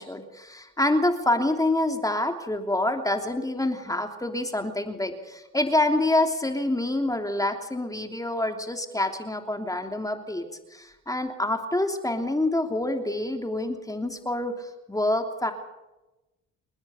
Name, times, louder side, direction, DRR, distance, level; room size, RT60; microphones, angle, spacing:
voice 1, 0.0-15.5, left 1 dB, 10° left, 5 dB, 3.0 m, -27 dB
29.5 x 10.5 x 9.4 m, 1.0 s
cardioid pair, 90°, 30 cm